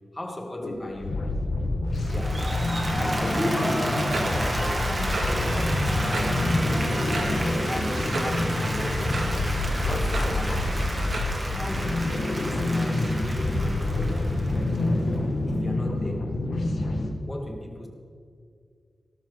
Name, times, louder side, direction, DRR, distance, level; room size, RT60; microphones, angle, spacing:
voice 1, 0.1-1.3 2.1-2.5 3.0-7.2 7.7-9.4 9.8-10.9 11.4-14.4 15.5-16.4 17.2-17.9, left 1 dB, 20° left, 2.3 m, -35 dB
sound 1, 0.6-17.1, left 2 dB, 70° left, 1.8 m, -27 dB
Applause, 1.9-15.1, right 1 dB, 30° right, 2.4 m, -32 dB
sound 2, 4.1-11.2, right 1 dB, 90° right, 2.5 m, -32 dB
18.5 x 13.0 x 4.1 m
wide cardioid pair, 105°, 0 cm